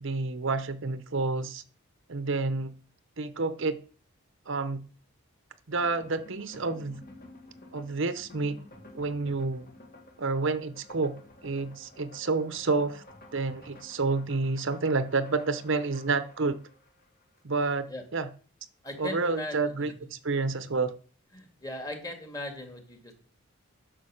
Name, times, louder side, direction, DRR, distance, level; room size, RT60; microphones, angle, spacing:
voice 1, 0.0-1.6 2.1-2.7 3.2-3.8 4.5-4.8 5.7-7.0 7.7-8.6 8.9-9.7 10.2-11.2 11.4-13.0 13.3-16.6 17.4-17.9 18.1-18.3 19.0-20.9, right 3 dB, 60° right, 12 dB, 0.8 m, -29 dB
sound 1, 5.7-17.4, left 1 dB, 45° left, 2.0 m, -52 dB
voice 2, 18.8-19.9 20.5-20.6 21.3-23.1, left 1 dB, 15° left, 4 dB, 2.0 m, -39 dB
11.0 x 6.4 x 6.4 m, 0.40 s
head